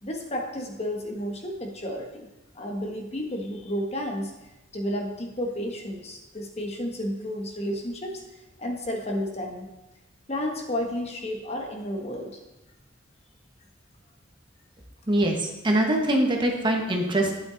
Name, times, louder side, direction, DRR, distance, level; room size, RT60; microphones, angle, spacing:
voice 1, 0.0-2.3 2.5-4.3 4.7-8.2 8.6-9.7 10.3-12.4, equal, 35° left, 2 dB, 1.4 m, -32 dB
voice 2, 15.1-17.3, right 1 dB, 25° right, 1 dB, 1.4 m, -23 dB
11.5 x 8.8 x 4.0 m, 0.98 s
head